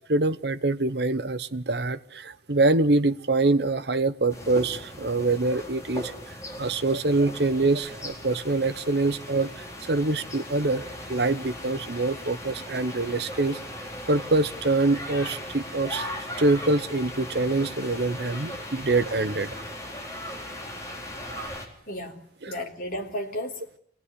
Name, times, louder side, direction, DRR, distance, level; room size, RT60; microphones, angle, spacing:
voice 1, 0.1-6.1 6.6-10.8 11.1-13.6 14.1-16.1 16.4-19.6 21.3-21.5 22.4-22.5, right 2 dB, 65° right, 1.0 m, -25 dB
sound 1, 4.3-21.7, left 1 dB, 15° left, 4.0 m, -38 dB
voice 2, 21.9-23.8, left 1 dB, 50° left, 3.5 m, -34 dB
26.5 x 18.5 x 9.9 m
head